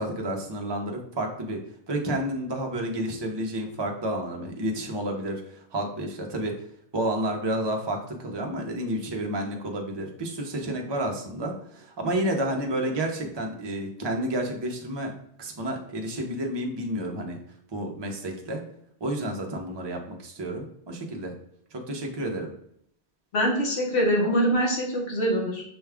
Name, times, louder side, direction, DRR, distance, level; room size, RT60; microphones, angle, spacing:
voice 1, 0.0-1.6 1.9-6.5 6.9-15.1 15.4-17.4 17.7-18.6 19.0-21.3 21.7-22.5, right 1 dB, 30° right, 2 dB, 0.6 m, -30 dB
voice 2, 23.3-25.6, equal, 70° left, 0 dB, 1.3 m, -24 dB
6.1 x 2.3 x 3.4 m, 0.69 s
omnidirectional pair, 1.2 m